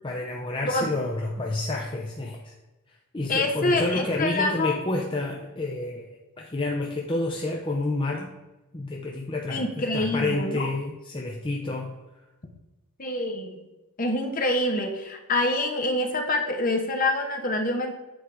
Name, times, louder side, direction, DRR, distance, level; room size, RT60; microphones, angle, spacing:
voice 1, 0.0-2.5 3.1-8.3 8.7-11.9, left 2 dB, 25° left, 0 dB, 0.7 m, -29 dB
voice 2, 3.3-4.8 9.5-10.7 13.0-13.6 14.0-17.9, left 2 dB, 40° left, 4 dB, 1.1 m, -26 dB
8.2 x 4.9 x 4.8 m, 1.1 s
head